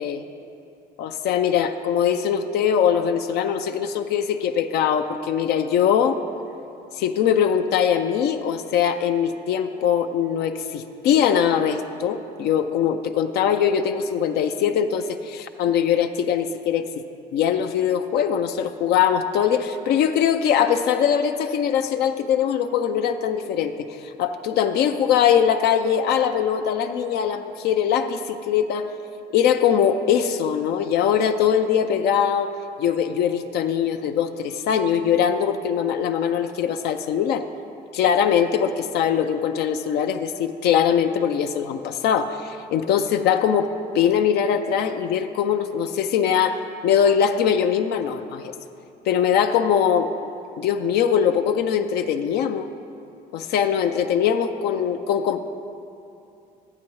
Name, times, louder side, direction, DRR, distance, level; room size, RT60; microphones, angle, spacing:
voice 1, 1.0-6.2 7.0-16.9 17.3-23.7 24.0-28.9 29.3-32.5 32.8-37.4 37.9-48.5 49.1-50.1 50.6-52.7 53.3-55.4, left 8 dB, 75° left, 7 dB, 0.4 m, -22 dB
13.0 x 8.5 x 3.1 m, 2.7 s
cardioid pair, 110°, 17 cm